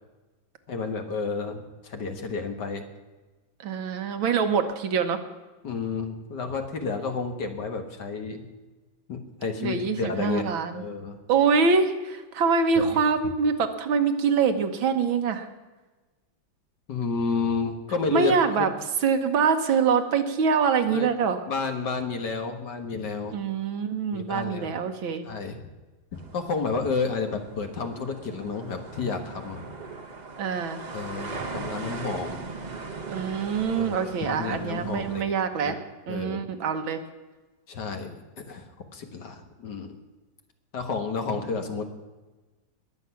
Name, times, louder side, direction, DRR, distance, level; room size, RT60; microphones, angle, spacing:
voice 1, 0.7-2.9 5.6-8.4 9.1-10.4 10.7-11.2 12.8-12.9 16.9-18.7 20.9-21.1 21.5-23.3 24.1-24.8 25.2-25.6 26.1-29.6 30.9-32.5 33.8-35.8 36.1-36.5 37.7-38.7 38.9-40.0 40.7-41.8, left 4 dB, 60° left, 5 dB, 2.0 m, -31 dB
voice 2, 3.6-5.2 9.6-10.8 11.3-15.5 18.1-18.7 19.0-21.4 23.3-25.3 30.4-30.8 33.1-35.8 36.1-37.0, right 5 dB, 75° right, 7 dB, 1.9 m, -24 dB
sound 1, 26.1-35.2, right 4 dB, 30° right, 1.0 m, -39 dB
21.0 x 8.0 x 5.8 m, 1.2 s
omnidirectional pair, 2.2 m